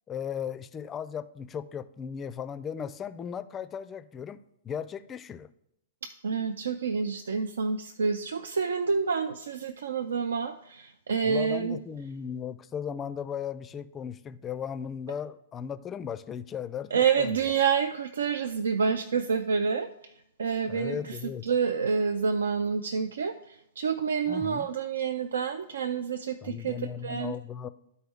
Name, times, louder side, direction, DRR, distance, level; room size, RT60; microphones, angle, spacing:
voice 1, 0.1-5.5 11.2-17.4 20.6-21.5 24.3-24.7 26.4-27.7, left 8 dB, 25° left, 15 dB, 0.4 m, -36 dB
voice 2, 6.0-11.8 16.9-20.1 20.4-21.2 21.4-26.8 27.0-27.4, right 6 dB, 75° right, 8 dB, 0.4 m, -28 dB
11.5 x 4.4 x 3.5 m, 0.78 s
hypercardioid pair, 110°, 0 cm